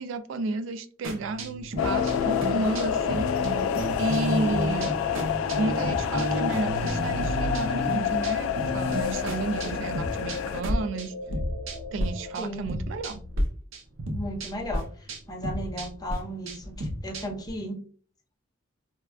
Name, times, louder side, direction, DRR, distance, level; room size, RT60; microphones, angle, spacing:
voice 1, 0.0-3.3 4.0-4.9 5.6-11.1 11.9-13.2, right 3 dB, 70° right, 10 dB, 0.3 m, -32 dB
sound 1, 1.0-12.1 12.3-13.4 13.7-17.5, equal, 85° right, 0.7 m, -32 dB
sound 2, 1.8-10.6, left 7 dB, 90° left, 0.3 m, -28 dB
sound 3, 9.0-12.4, left 3 dB, 60° left, 0.9 m, -45 dB
voice 2, 14.1-14.8 15.3-17.8, equal, 20° left, 0 dB, 0.7 m, -35 dB
4.2 x 2.3 x 2.3 m, 0.43 s
head